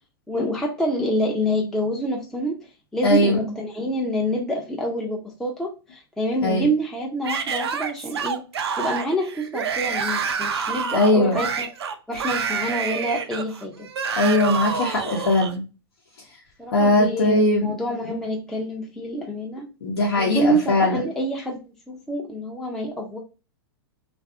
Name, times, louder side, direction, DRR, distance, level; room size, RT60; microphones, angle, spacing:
voice 1, 0.3-2.6 2.9-8.4 8.8-11.7 12.1-13.9 16.6-19.7 20.2-23.2, equal, 5° left, -2 dB, 0.4 m, -27 dB
voice 2, 3.0-3.4 6.4-6.6 10.9-11.4 14.2-15.6 16.7-17.7 19.8-21.0, left 2 dB, 80° left, -3 dB, 0.7 m, -20 dB
Yell / Screaming, 7.2-15.5, right 6 dB, 85° right, 0.4 m, -28 dB
2.5 x 2.4 x 2.3 m, 0.31 s
hypercardioid pair, 115°, 13 cm